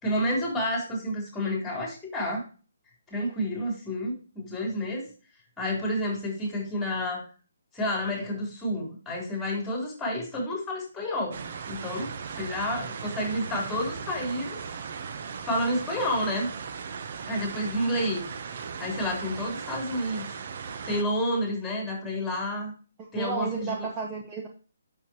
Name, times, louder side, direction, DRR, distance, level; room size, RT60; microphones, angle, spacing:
voice 1, 0.0-2.5 3.1-5.1 5.6-7.2 7.7-14.6 15.4-16.5 17.3-18.2 18.8-20.3 20.9-22.7 23.1-23.7, left 1 dB, 5° left, -1 dB, 3.8 m, -30 dB
sound 1, 11.3-21.0, right 6 dB, 50° right, 0.8 m, -37 dB
voice 2, 23.0-24.5, right 5 dB, 20° right, 1 dB, 1.2 m, -32 dB
8.7 x 6.6 x 3.0 m, 0.35 s
figure-of-eight pair, 145°, 0 cm